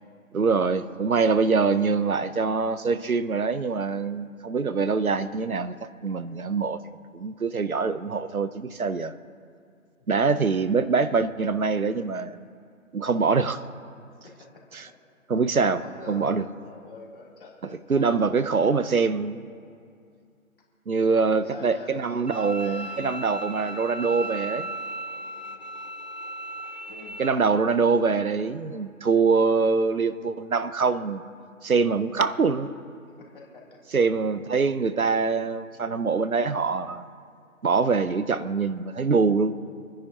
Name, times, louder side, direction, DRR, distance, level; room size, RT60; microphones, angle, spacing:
voice 1, 0.3-5.7 6.0-6.8 7.1-9.1 10.1-12.4 12.9-13.6 14.7-14.9 15.3-15.8 16.1-16.4 17.9-19.4 20.9-24.6 27.2-31.2 31.6-32.7 33.9-37.1 37.6-39.5, right 4 dB, 85° right, 13 dB, 0.8 m, -24 dB
voice 2, 14.1-14.6 15.5-18.8 21.0-24.3 24.6-24.8 25.4-25.6 26.9-27.2 33.2-33.8, left 4 dB, 40° left, -2 dB, 3.0 m, -46 dB
Bowed string instrument, 22.3-27.3, right 1 dB, 35° right, 0.4 m, -36 dB
26.5 x 10.0 x 2.8 m, 2.3 s
figure-of-eight pair, 145°, 42 cm